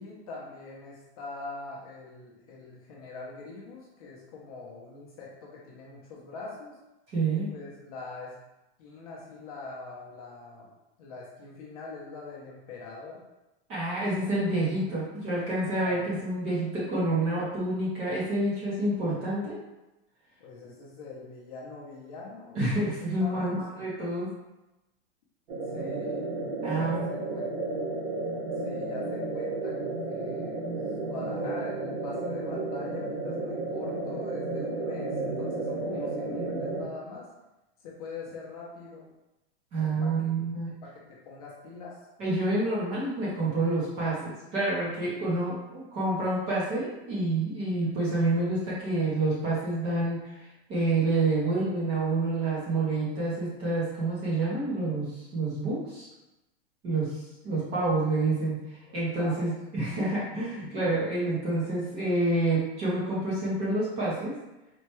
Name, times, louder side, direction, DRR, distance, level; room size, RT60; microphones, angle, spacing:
voice 1, 0.0-6.8 7.3-8.3 8.8-10.7 11.0-13.2 14.0-14.3 14.5-14.9 15.8-16.1 20.4-22.7 23.2-23.5 25.7-26.3 26.7-27.5 28.6-29.7 30.1-37.3 37.8-39.1 39.8-40.3 40.7-42.0 57.5-57.8 58.8-59.5, left 3 dB, 35° left, -4 dB, 0.6 m, -43 dB
voice 2, 7.1-7.5 13.7-19.6 22.5-24.3 26.6-27.1 35.9-36.1 39.7-40.7 42.2-56.1 56.8-64.4, right 2 dB, 20° right, -7 dB, 0.6 m, -28 dB
sound 1, 25.5-36.8, right 2 dB, 55° right, 0.9 m, -32 dB
4.3 x 2.2 x 3.0 m, 0.98 s
supercardioid pair, 175°, 34 cm